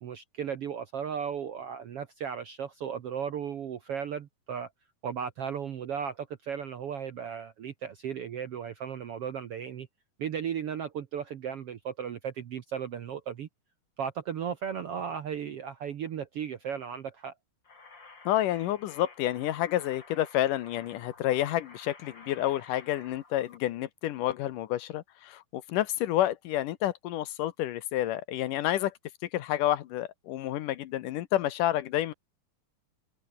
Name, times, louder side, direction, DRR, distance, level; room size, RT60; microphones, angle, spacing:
voice 1, 0.0-4.7 5.0-9.9 10.2-13.5 14.0-17.3, right 8 dB, 65° right, 1.5 m, -35 dB
sound 1, 17.6-23.6, left 4 dB, 30° left, 4.3 m, -52 dB
voice 2, 18.3-28.9 29.3-32.1, left 13 dB, 70° left, 2.4 m, -29 dB
omnidirectional pair, 4.1 m